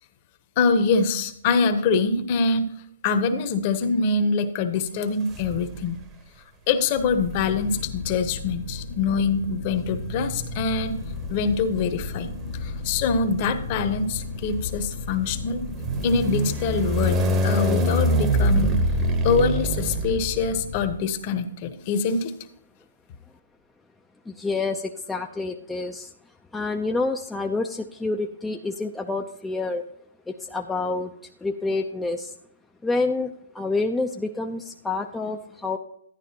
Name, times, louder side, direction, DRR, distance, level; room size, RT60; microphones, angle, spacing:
voice 1, 0.6-2.7 3.0-6.0 6.7-11.0 11.3-12.3 12.6-15.6 16.0-18.7 19.2-22.3, left 4 dB, 40° left, 10 dB, 0.9 m, -24 dB
sound 1, 5.3-6.0 7.1-20.8, right 1 dB, 20° right, 0.9 m, -27 dB
sound 2, 7.0-20.9, left 5 dB, 60° left, 0.6 m, -35 dB
voice 2, 24.3-26.1 26.5-29.8 30.3-31.1 31.4-32.3 32.8-35.8, left 3 dB, 5° left, 3 dB, 0.4 m, -28 dB
11.5 x 9.9 x 2.8 m, 0.70 s
hypercardioid pair, 145°, 0 cm